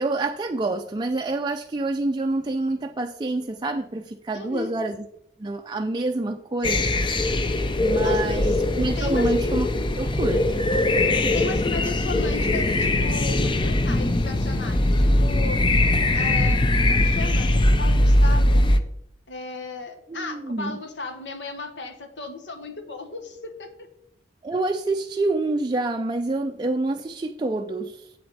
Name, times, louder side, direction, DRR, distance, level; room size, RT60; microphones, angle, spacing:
voice 1, 0.0-5.1 5.4-6.9 7.8-9.7 10.0-10.4 20.1-20.8 24.4-28.1, right 2 dB, 25° right, 5 dB, 0.4 m, -27 dB
voice 2, 4.3-4.7 8.0-8.6 9.0-9.3 11.3-15.6 16.1-16.6 16.9-18.7 19.3-23.9, left 4 dB, 80° left, 6 dB, 1.3 m, -35 dB
sound 1, 6.6-18.8, left 1 dB, 25° left, 0.6 m, -21 dB
8.0 x 7.7 x 4.1 m, 0.77 s
head